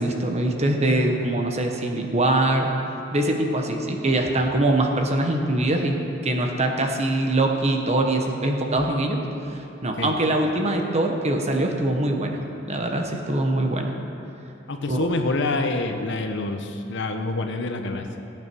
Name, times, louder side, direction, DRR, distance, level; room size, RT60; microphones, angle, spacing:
voice 1, 0.0-2.7 3.1-6.0 6.2-9.2 9.5-12.4 12.7-13.9 14.9-15.1, right 1 dB, 35° right, 3 dB, 1.3 m, -23 dB
voice 2, 14.7-18.2, left 2 dB, 65° left, 5 dB, 1.0 m, -27 dB
15.5 x 8.8 x 6.3 m, 2.8 s
head